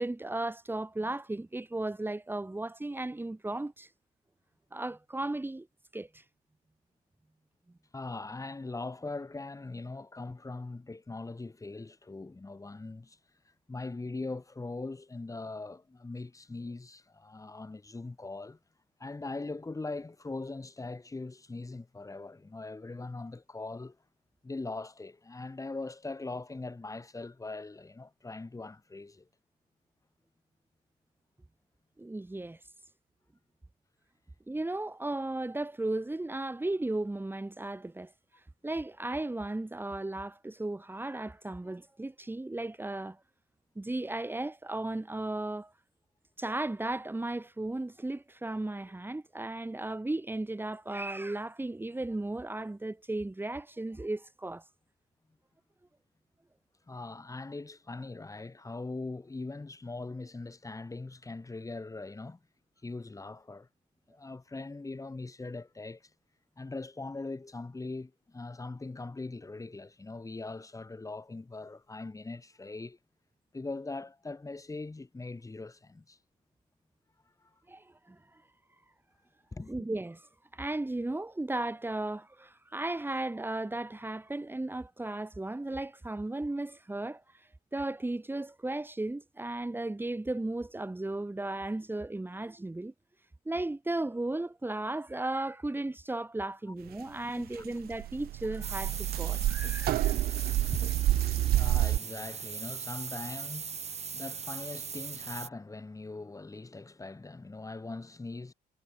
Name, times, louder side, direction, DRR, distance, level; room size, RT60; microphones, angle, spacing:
voice 1, 0.0-3.9 4.7-5.7 5.9-6.2 32.0-32.6 34.5-38.1 38.6-43.2 43.7-45.7 46.4-54.7 77.7-78.4 79.7-80.3 80.5-92.9 93.4-100.2 101.1-101.5, right 2 dB, 10° right, 3.2 m, -35 dB
voice 2, 7.9-13.2 13.7-18.6 19.0-24.0 24.4-29.3 42.9-43.0 56.9-62.4 62.8-63.7 64.1-66.1 66.6-73.0 73.5-76.2 77.4-77.5 79.5-79.7 97.0-97.5 100.4-100.7 101.5-108.5, left 3 dB, 20° left, 5.4 m, -41 dB
sound 1, 97.5-97.6 97.8-102.0, right 14 dB, 65° right, 0.5 m, -28 dB
sound 2, 98.6-105.5, right 6 dB, 40° right, 5.4 m, -39 dB
cardioid pair, 90°, 17 cm